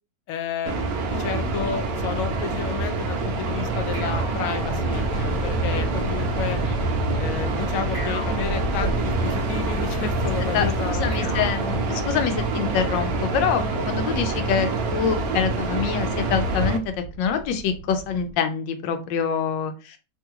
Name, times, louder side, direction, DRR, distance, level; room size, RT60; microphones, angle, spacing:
voice 1, 0.3-6.6 7.2-11.1, left 8 dB, 75° left, 7 dB, 0.8 m, -31 dB
sound 1, 0.7-16.8, right 2 dB, 70° right, 0.9 m, -26 dB
sound 2, 3.9-5.6 7.9-9.5 11.1-12.6, left 1 dB, 5° left, 0.7 m, -40 dB
sound 3, 4.6-18.3, right 1 dB, 55° left, 1.4 m, -34 dB
voice 2, 10.5-20.0, left 7 dB, 90° left, 7 dB, 1.3 m, -26 dB
3.3 x 2.3 x 2.8 m, 0.31 s
omnidirectional pair, 1.9 m